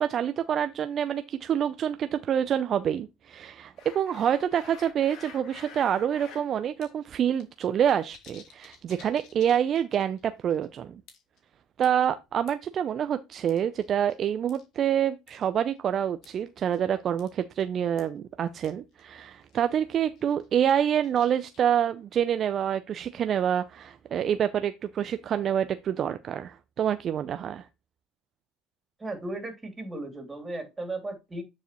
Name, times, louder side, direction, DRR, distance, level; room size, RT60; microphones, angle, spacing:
voice 1, 0.0-11.0 11.8-27.7, right 9 dB, 45° right, 0.5 m, -27 dB
sound 1, 3.8-6.4 6.8-6.9 7.2-10.2 10.5-10.6 11.1-11.4 11.8-12.7 13.5-14.1 14.5-14.6 15.3-15.5 16.2-16.4 16.7-16.9 17.2-17.3 17.6-17.7 18.0-18.1 18.6-18.7 19.0-19.1 19.4-19.7 20.1-21.8, left 6 dB, 60° left, 2.1 m, -50 dB
voice 2, 29.0-31.4, right 2 dB, 20° right, 2.9 m, -36 dB
9.2 x 4.8 x 3.0 m
hypercardioid pair, 70°, 0 cm